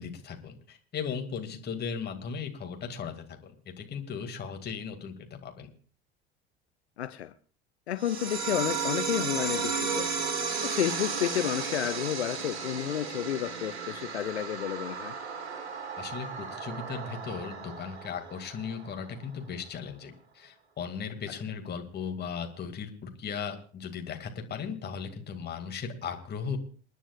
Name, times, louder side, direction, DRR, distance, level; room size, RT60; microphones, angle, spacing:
voice 1, 0.0-5.7 16.0-26.6, left 6 dB, 30° left, 4 dB, 2.2 m, -37 dB
voice 2, 7.0-7.3 7.9-15.1, left 11 dB, 70° left, 12 dB, 0.7 m, -31 dB
sound 1, 8.0-19.0, right 5 dB, 65° right, 2.2 m, -34 dB
28.5 x 10.0 x 2.4 m, 0.42 s
figure-of-eight pair, 70°, 33 cm